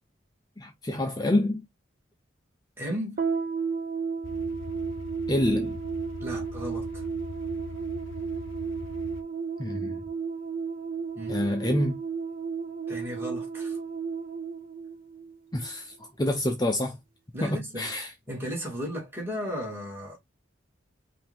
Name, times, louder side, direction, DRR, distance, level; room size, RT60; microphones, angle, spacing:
voice 1, 0.6-1.6 5.3-5.8 9.6-10.0 11.3-12.0 15.5-17.0 17.4-18.1, left 1 dB, 20° left, 0.6 m, -27 dB
voice 2, 2.8-3.2 6.2-7.1 11.1-11.4 12.9-13.8 17.3-17.9 18.3-20.2, equal, 10° right, 2.4 m, -35 dB
sound 1, 3.2-15.7, right 5 dB, 45° right, 0.9 m, -33 dB
sound 2, 4.2-9.2, left 4 dB, 75° left, 0.5 m, -42 dB
5.3 x 2.7 x 3.5 m
head